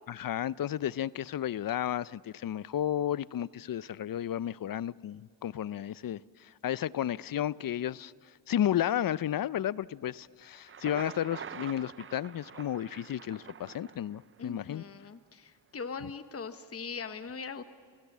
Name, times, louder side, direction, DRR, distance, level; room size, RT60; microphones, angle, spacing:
voice 1, 0.1-8.1 8.5-14.8, left 11 dB, 50° left, 0.5 m, -33 dB
Thunder, 10.5-14.5, right 7 dB, 30° right, 0.5 m, -46 dB
voice 2, 14.4-17.6, left 5 dB, 35° left, 1.1 m, -41 dB
28.5 x 17.0 x 7.3 m
cardioid pair, 80°, 43 cm